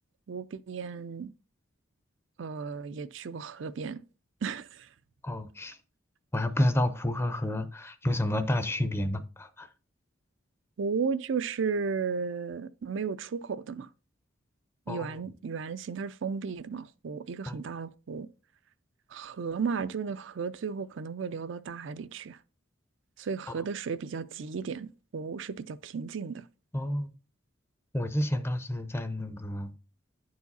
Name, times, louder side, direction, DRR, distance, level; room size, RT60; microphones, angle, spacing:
voice 1, 0.3-1.3 2.4-4.0 4.4-4.9 10.8-13.9 14.9-18.3 19.1-22.4 23.2-26.5, right 5 dB, 65° right, 0.4 m, -34 dB
voice 2, 5.2-5.8 6.3-9.7 14.9-15.1 17.5-17.6 26.7-27.1 27.9-29.7, left 1 dB, 10° left, 0.5 m, -30 dB
10.0 x 4.8 x 4.1 m
head